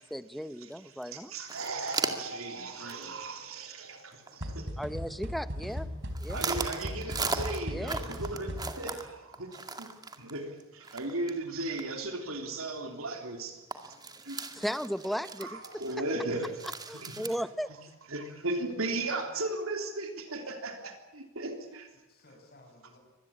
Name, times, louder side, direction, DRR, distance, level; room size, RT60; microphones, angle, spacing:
voice 1, 0.1-1.3 4.8-5.9 6.2-6.4 7.7-8.0 14.5-15.8 16.9-17.7, equal, ahead, 0.8 m, -36 dB
sound 1, 0.7-0.8 1.0-1.1 1.4-2.4 2.9-3.1 3.4-3.5 3.9-4.5 5.2-5.8 6.1-11.4 11.8-11.9 12.3-12.4 12.9-13.0 13.3-13.4 13.7-17.3, right 4 dB, 20° right, 2.2 m, -37 dB
voice 2, 1.1-4.7 6.3-9.9 10.2-13.9 14.2-14.5 15.4-16.6 16.9-17.3 18.1-21.9, right 2 dB, 75° right, 3.4 m, -36 dB
voice 3, 2.3-3.2 4.2-4.9 13.9-14.5 18.5-18.6 18.9-19.4 22.1-23.0, left 1 dB, 50° left, 7.8 m, -59 dB
sound 2, 4.4-9.0, equal, 60° right, 4.4 m, -38 dB
24.5 x 20.0 x 8.7 m
head